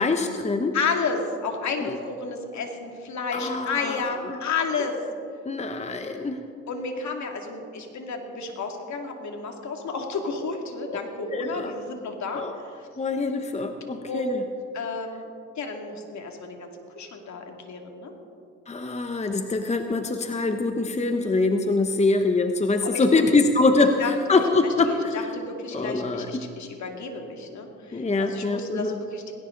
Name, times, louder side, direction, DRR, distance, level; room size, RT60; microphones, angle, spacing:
voice 1, 0.0-0.7 1.8-2.0 3.3-4.4 5.4-6.4 10.9-11.0 11.3-11.7 12.3-12.5 13.0-14.4 18.7-25.3 25.7-26.3 27.9-29.0, left 3 dB, 20° left, 6 dB, 1.0 m, -24 dB
voice 2, 0.7-5.0 6.7-12.9 14.1-14.3 14.7-15.3 15.6-18.1 22.8-23.0 24.0-24.1 24.6-29.3, left 4 dB, 60° left, 3 dB, 2.7 m, -31 dB
19.0 x 17.5 x 4.0 m, 2.4 s
cardioid pair, 80°, 32 cm